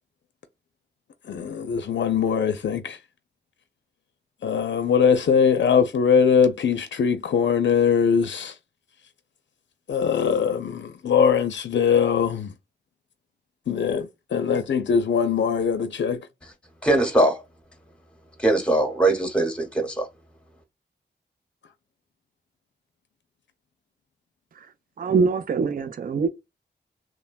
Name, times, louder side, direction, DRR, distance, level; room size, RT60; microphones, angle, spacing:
voice 1, 1.3-3.0 4.4-8.5 9.9-12.5 13.7-16.2, left 7 dB, 75° left, 0.4 m, -21 dB
voice 2, 16.8-17.4 18.4-20.1, right 1 dB, 5° left, 0.9 m, -21 dB
voice 3, 25.0-26.3, right 5 dB, 50° right, 0.4 m, -23 dB
3.1 x 2.1 x 2.2 m
wide cardioid pair, 90°, 19 cm